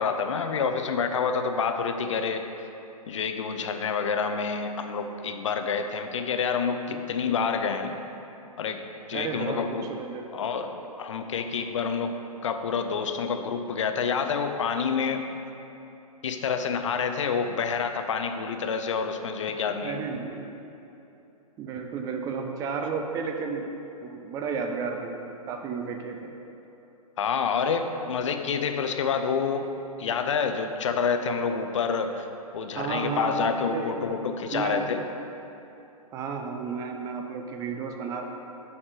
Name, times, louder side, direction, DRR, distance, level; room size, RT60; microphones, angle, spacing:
voice 1, 0.0-2.4 3.1-7.9 8.6-9.9 10.3-10.7 11.0-12.1 12.4-15.3 16.2-20.0 27.2-29.7 30.0-32.3 32.5-35.0, left 6 dB, 55° left, 7 dB, 0.6 m, -28 dB
voice 2, 9.1-10.3 19.8-20.5 21.6-23.7 24.0-26.2 32.8-34.2 34.5-34.8 36.1-38.2, right 5 dB, 20° right, 4 dB, 0.5 m, -32 dB
8.4 x 4.3 x 5.1 m, 3.0 s
figure-of-eight pair, 115°, 19 cm